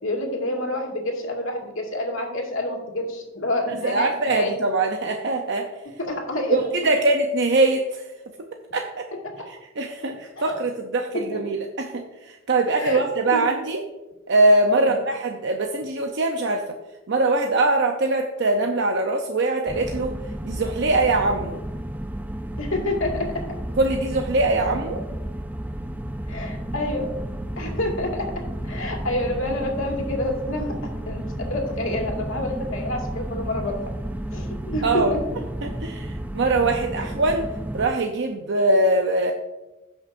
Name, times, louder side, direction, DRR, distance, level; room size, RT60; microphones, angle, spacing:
voice 1, 0.0-4.5 6.0-6.6 10.4-10.5 11.3-11.4 12.8-13.0 13.3-13.5 14.8-15.0 22.6-23.3 26.3-27.1 27.6-28.3 28.6-30.7 31.1-33.7 34.3-35.2 37.0-37.1, left 1 dB, 80° left, 0 dB, 2.1 m, -28 dB
voice 2, 3.8-5.7 6.5-8.0 8.7-9.1 9.8-13.8 14.3-16.6 17.1-20.1 20.4-21.6 23.8-25.0 34.8-35.1 35.6-37.5 37.7-39.3, right 2 dB, 60° right, 3 dB, 0.7 m, -22 dB
sound 1, 19.7-37.9, right 1 dB, 10° right, 0.4 m, -32 dB
16.5 x 5.9 x 2.6 m, 1.0 s
head